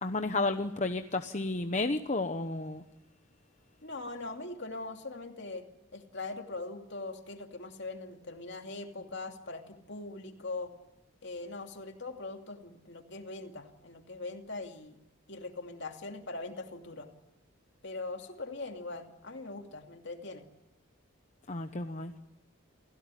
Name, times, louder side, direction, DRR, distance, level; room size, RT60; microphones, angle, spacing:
voice 1, 0.0-2.8 21.5-22.1, left 2 dB, 35° left, 7 dB, 0.9 m, -32 dB
voice 2, 3.8-5.6 5.9-10.7 11.2-15.0 15.3-17.1 17.8-20.4, left 3 dB, 55° left, 4 dB, 2.7 m, -41 dB
29.0 x 16.5 x 9.9 m, 0.90 s
head